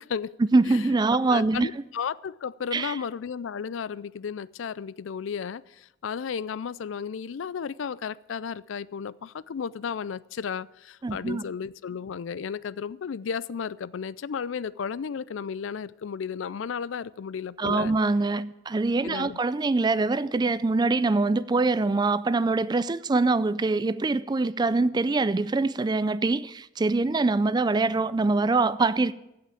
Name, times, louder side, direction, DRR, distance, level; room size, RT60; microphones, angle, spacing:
voice 1, 0.0-0.3 0.7-17.9 19.0-19.4, left 6 dB, 85° left, 0.4 m, -34 dB
voice 2, 0.5-1.7 2.7-2.9 11.0-11.4 17.6-29.1, right 3 dB, 20° right, 0.4 m, -24 dB
16.0 x 5.8 x 8.9 m
head